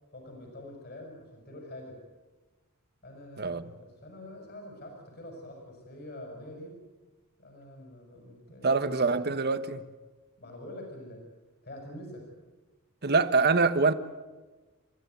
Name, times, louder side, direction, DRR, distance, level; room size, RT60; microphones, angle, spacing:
voice 1, 0.1-2.0 3.0-6.8 7.4-9.3 10.4-11.2 11.6-12.3, left 1 dB, 50° left, 6.5 m, -45 dB
voice 2, 8.6-9.8 13.0-13.9, right 4 dB, 45° right, 1.2 m, -24 dB
30.0 x 14.5 x 9.3 m
head